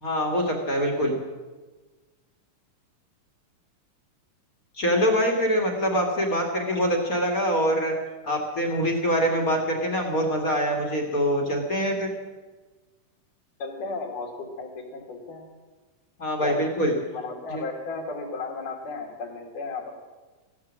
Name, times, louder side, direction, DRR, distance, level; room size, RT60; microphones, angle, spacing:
voice 1, 0.0-1.2 4.8-7.9 8.2-12.1 16.2-16.9 17.5-17.6, equal, 30° left, 2 dB, 2.0 m, -24 dB
voice 2, 13.6-15.5 16.4-16.6 17.1-19.9, left 4 dB, 75° left, 1 dB, 4.0 m, -34 dB
15.0 x 11.5 x 7.3 m, 1.3 s
omnidirectional pair, 3.7 m